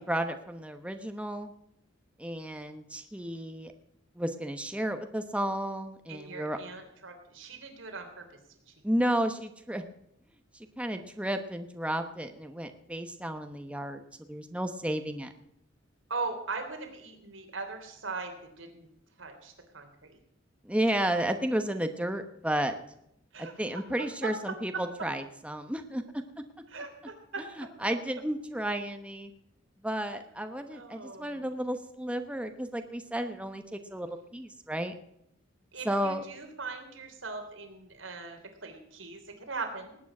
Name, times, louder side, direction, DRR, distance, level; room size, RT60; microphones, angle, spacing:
voice 1, 0.0-1.5 2.2-3.7 4.2-6.6 8.8-9.8 10.8-14.0 14.3-15.3 20.6-22.7 23.4-26.0 27.8-29.3 29.8-34.1 34.3-34.9 35.8-36.2, right 1 dB, 5° right, 7 dB, 1.0 m, -32 dB
voice 2, 6.1-8.4 8.7-8.8 16.1-18.9 19.2-20.2 23.3-23.8 24.2-24.3 26.7-27.4 30.7-31.4 35.7-40.0, right 4 dB, 85° right, 5 dB, 3.3 m, -40 dB
19.5 x 9.1 x 6.1 m, 0.76 s
head